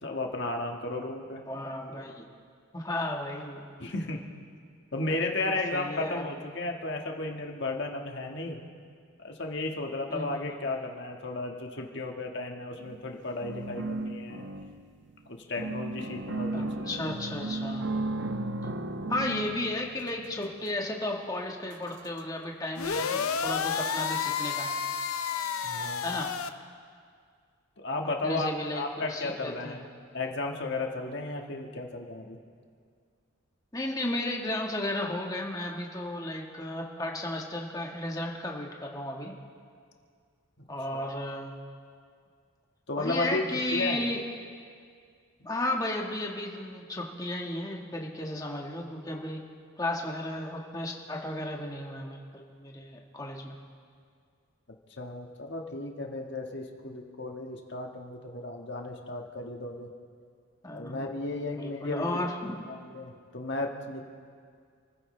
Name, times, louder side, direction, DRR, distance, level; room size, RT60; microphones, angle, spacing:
voice 1, 0.0-1.4 3.8-4.2 4.9-8.6 9.2-14.4 15.3-17.0 25.6-26.2 27.8-29.9 30.1-32.4 40.6-40.7 42.9-44.0 55.0-59.9 60.7-62.1 62.7-64.0, left 2 dB, 55° left, 1 dB, 1.6 m, -34 dB
voice 2, 1.5-2.3 2.7-3.7 5.1-5.2 5.4-6.3 10.1-10.7 16.5-17.8 19.1-24.7 26.0-26.3 28.0-29.8 33.7-39.3 40.7-41.6 43.0-44.2 45.4-49.4 49.8-53.6 60.6-61.1 61.6-62.6, left 1 dB, 15° left, 0 dB, 1.4 m, -34 dB
sound 1, 12.8-13.1 13.4-15.1 15.6-20.7 21.7-21.8 22.2-22.3, right 2 dB, 55° right, 0.7 m, -35 dB
sound 2, 22.8-26.5, left 6 dB, 90° left, 0.7 m, -31 dB
28.5 x 15.0 x 3.3 m, 2.1 s
head